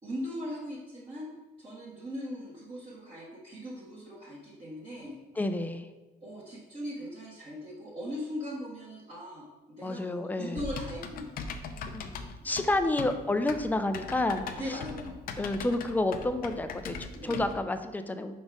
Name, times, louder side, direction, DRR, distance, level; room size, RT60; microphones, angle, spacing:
voice 1, 0.0-1.3 1.6-5.2 6.2-11.3 12.4-12.8 14.5-15.2 17.1-17.3, equal, 35° right, -8 dB, 1.5 m, -39 dB
voice 2, 5.4-5.9 9.8-10.6 11.7-14.8 15.4-18.4, left 2 dB, 10° left, 9 dB, 0.4 m, -30 dB
Typing, 10.6-17.6, left 5 dB, 60° left, 0.6 m, -40 dB
5.0 x 4.2 x 4.7 m, 1.2 s
cardioid pair, 110°, 17 cm